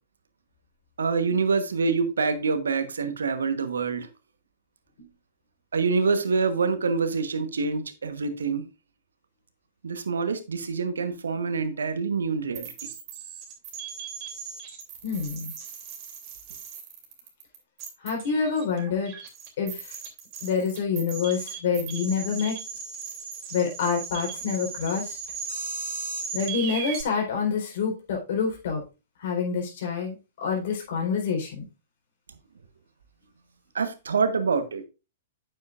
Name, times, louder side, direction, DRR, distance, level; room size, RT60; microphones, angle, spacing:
voice 1, 1.0-4.1 5.7-8.6 9.8-12.7 33.7-34.8, right 4 dB, 75° right, 10 dB, 1.2 m, -26 dB
sound 1, 12.5-27.0, right 6 dB, 40° right, 2.9 m, -37 dB
voice 2, 15.0-15.5 18.0-19.1 19.6-19.8 20.4-22.5 23.5-25.2 26.3-28.8 29.2-30.2 30.4-31.6, left 6 dB, 55° left, 1 dB, 4.0 m, -27 dB
9.4 x 7.7 x 2.5 m, 0.29 s
figure-of-eight pair, 110°, 0 cm